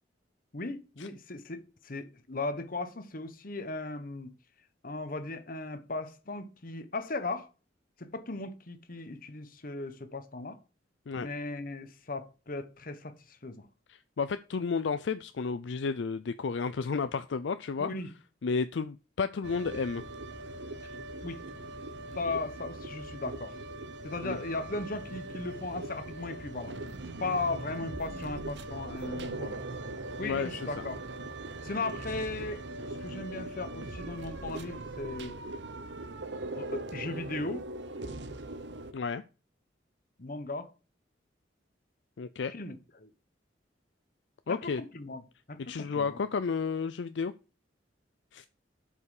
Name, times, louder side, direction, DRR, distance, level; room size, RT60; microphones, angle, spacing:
voice 1, 0.5-4.3 4.8-7.5 8.0-10.6 11.2-13.7 17.8-18.1 21.2-21.4 22.1-23.6 24.0-26.7 27.2-29.6 30.2-31.0 31.6-32.7 33.0-35.4 36.6-37.7 40.2-40.7 42.5-43.1 44.5-45.2 45.5-46.2, left 3 dB, 50° left, 1.1 m, -37 dB
voice 2, 13.9-17.9 18.4-20.0 24.2-24.4 30.2-30.8 38.9-39.2 42.2-42.5 44.5-44.8 45.7-47.3 48.3-48.5, left 5 dB, 75° left, 0.5 m, -32 dB
sound 1, 19.4-38.9, right 2 dB, 70° right, 0.9 m, -40 dB
8.1 x 5.6 x 4.9 m
head